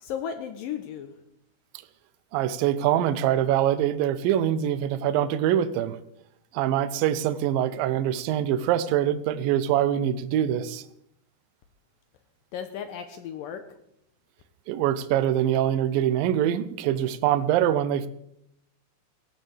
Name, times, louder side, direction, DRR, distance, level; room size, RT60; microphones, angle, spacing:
voice 1, 0.0-1.2 12.5-13.6, left 8 dB, 75° left, 7 dB, 2.2 m, -35 dB
voice 2, 2.3-6.0 6.5-10.8 14.7-18.1, right 11 dB, 75° right, 13 dB, 2.1 m, -24 dB
17.5 x 16.5 x 3.4 m, 0.78 s
omnidirectional pair, 4.8 m